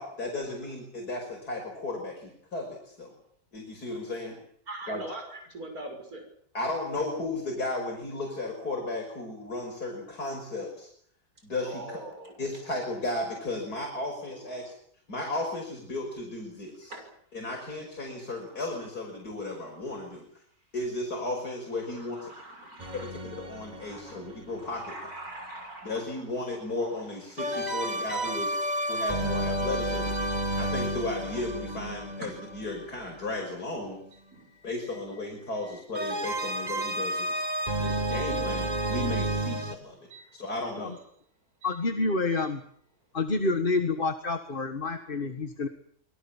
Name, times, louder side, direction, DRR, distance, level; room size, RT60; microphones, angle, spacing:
voice 1, 0.0-3.1 3.5-4.4 4.9-5.0 6.5-10.9 11.4-12.0 12.4-14.7 15.1-16.9 17.3-20.3 20.7-22.3 22.9-24.9 25.8-28.6 28.9-30.2 30.6-34.0 34.6-37.4 37.8-40.0 40.3-40.9, left 2 dB, 70° left, 1 dB, 6.4 m, -35 dB
voice 2, 4.7-6.3 11.6-12.9 14.4-14.7 16.9-17.1 18.4-18.6 21.8-23.1 23.5-24.2 24.6-28.2 32.2-32.3 34.3-35.4 35.6-35.8 36.9-37.0 37.5-38.5 40.1-40.4 41.6-41.8 42.4-42.5, right 1 dB, 60° right, 4 dB, 6.7 m, -45 dB
sound 1, 22.8-24.8 27.4-33.3 35.9-39.7, right 1 dB, 25° right, 2.2 m, -31 dB
voice 3, 41.6-42.6 43.1-45.7, left 3 dB, 35° left, 8 dB, 1.8 m, -28 dB
27.0 x 22.5 x 7.3 m, 0.64 s
omnidirectional pair, 1.7 m